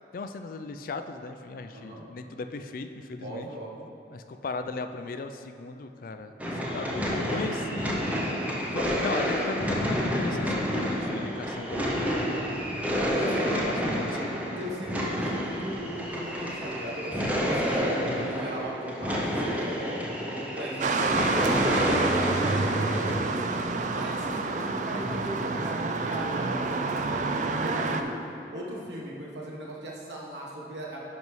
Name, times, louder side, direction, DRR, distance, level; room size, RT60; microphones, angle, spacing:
voice 1, 0.1-3.5 4.1-6.3 6.7-7.9 8.4-12.5 12.8-14.4 18.0-18.3 25.1-25.3, left 3 dB, 50° left, 8 dB, 0.3 m, -37 dB
voice 2, 1.7-2.0 3.2-3.9 12.9-13.6 14.6-20.0 20.3-23.4 23.9-27.2 27.5-28.2 28.5-31.0, right 1 dB, 75° right, -3 dB, 1.3 m, -38 dB
sound 1, 6.4-23.2, equal, 10° right, 0.6 m, -29 dB
sound 2, 20.8-28.0, right 3 dB, 40° right, 0.3 m, -28 dB
10.5 x 5.3 x 3.2 m, 2.7 s
head